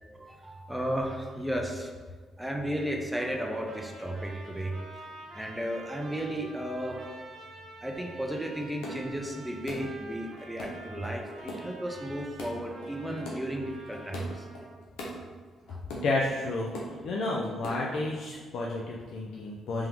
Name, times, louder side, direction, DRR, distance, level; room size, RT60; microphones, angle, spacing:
voice 1, 0.0-1.9 2.4-4.7 5.3-7.0 7.8-14.5 15.7-15.8, equal, 5° right, 1 dB, 0.6 m, -34 dB
Trumpet, 3.1-14.7, right 2 dB, 50° right, 1.2 m, -48 dB
sound 1, 7.9-8.0 8.6-9.0 9.3-9.8 10.4-11.6 12.2-12.6 12.8-13.4 13.9-14.3 14.5-15.1 15.7-16.1 16.3-16.9 17.4-18.2, left 1 dB, 90° left, 0.8 m, -40 dB
voice 2, 15.9-19.9, left 2 dB, 70° left, -3 dB, 0.4 m, -31 dB
3.5 x 2.9 x 3.4 m, 1.5 s
cardioid pair, 90°, 0 cm